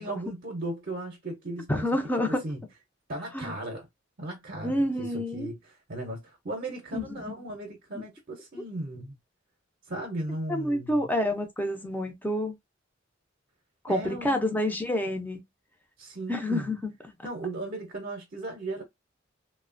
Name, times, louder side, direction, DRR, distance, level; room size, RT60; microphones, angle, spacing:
voice 1, 0.0-1.9 2.4-2.6 3.1-3.9 4.2-9.2 9.9-11.1 13.9-14.4 16.0-16.7 17.2-18.8, right 2 dB, 45° right, 0.6 m, -36 dB
voice 2, 1.7-2.4 3.3-3.5 4.6-5.5 6.9-7.3 7.9-8.0 10.5-12.5 13.8-15.4 16.3-16.9, left 1 dB, 10° left, 0.5 m, -28 dB
2.8 x 2.1 x 2.4 m
head